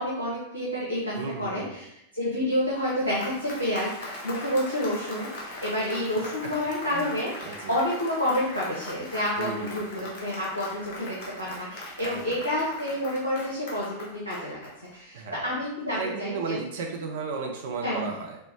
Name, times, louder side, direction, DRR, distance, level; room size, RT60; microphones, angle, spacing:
voice 1, 0.0-1.9 2.1-14.6 14.9-16.5 17.8-18.1, left 1 dB, 85° left, -5 dB, 0.7 m, -29 dB
voice 2, 1.1-1.8 6.2-6.5 6.8-7.1 7.4-7.8 9.4-9.8 12.0-12.4 15.1-15.5 15.9-18.4, right 4 dB, 55° right, 1 dB, 0.4 m, -34 dB
Applause, 2.6-15.2, left 1 dB, 50° left, 0.9 m, -40 dB
4.3 x 2.0 x 3.3 m, 0.81 s
figure-of-eight pair, 90°, 0 cm